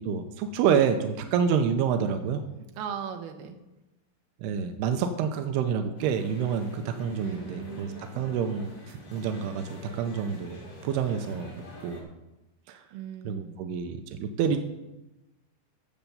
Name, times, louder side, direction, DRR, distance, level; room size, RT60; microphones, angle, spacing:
voice 1, 0.0-2.4 4.4-12.1 12.7-12.8 13.3-14.6, right 7 dB, 85° right, 7 dB, 2.3 m, -28 dB
voice 2, 2.8-3.6 7.2-8.0 12.9-13.5, right 8 dB, 70° right, 6 dB, 2.5 m, -38 dB
sound 1, 6.0-12.0, left 1 dB, 40° left, 2.4 m, -46 dB
10.5 x 7.1 x 7.0 m, 0.98 s
omnidirectional pair, 5.4 m